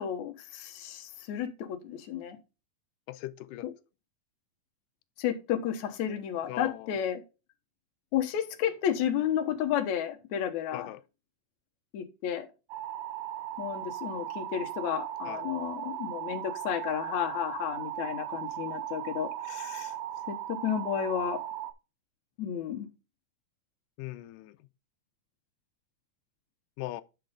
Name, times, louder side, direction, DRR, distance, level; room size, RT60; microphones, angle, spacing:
voice 1, 0.0-2.4 3.6-3.7 5.2-7.2 8.1-10.9 11.9-12.5 13.6-19.9 20.3-21.4 22.4-22.9, left 9 dB, 65° left, 2.3 m, -32 dB
voice 2, 3.1-3.7 6.5-6.9 10.7-11.0 15.3-15.4 24.0-24.6 26.8-27.0, left 15 dB, 85° left, 2.2 m, -39 dB
sound 1, 12.7-21.7, right 12 dB, 80° right, 2.2 m, -37 dB
10.5 x 4.6 x 3.6 m
omnidirectional pair, 3.8 m